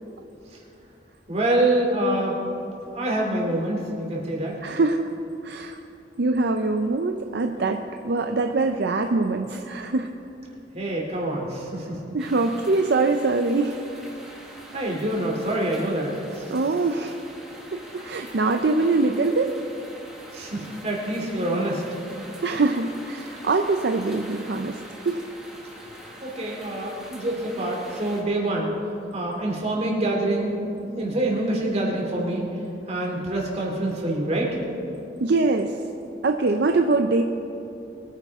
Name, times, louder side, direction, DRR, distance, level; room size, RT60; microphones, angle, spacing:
voice 1, 1.3-2.4 2.9-4.5 10.7-12.0 14.7-16.5 20.3-21.8 26.2-28.7 29.1-32.5 32.9-34.6, right 1 dB, 35° right, -2 dB, 2.8 m, -26 dB
voice 2, 4.6-5.1 5.4-5.8 6.2-10.1 12.1-13.8 16.5-17.2 17.7-19.5 22.4-25.2 26.0-26.1 35.2-35.8 36.2-37.2, right 3 dB, 60° right, 5 dB, 0.5 m, -23 dB
sound 1, 12.2-28.2, right 1 dB, 5° right, 2.0 m, -44 dB
22.5 x 10.0 x 3.6 m, 2.9 s
head